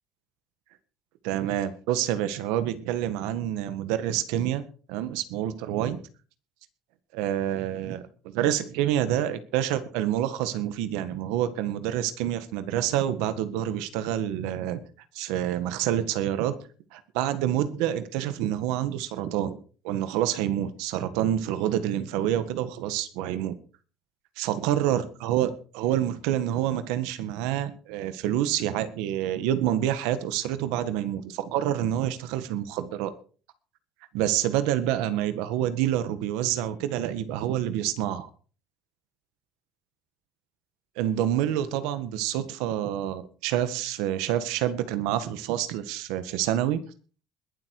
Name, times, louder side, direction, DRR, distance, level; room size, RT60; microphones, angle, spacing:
voice 1, 1.2-4.6 4.9-6.0 7.1-8.0 8.3-14.8 15.1-16.6 16.9-19.6 19.8-23.6 24.4-33.1 34.1-38.3 41.0-46.8, right 11 dB, 90° right, 12 dB, 1.7 m, -27 dB
21.0 x 8.0 x 4.9 m, 0.39 s
cardioid pair, 180°, 0 cm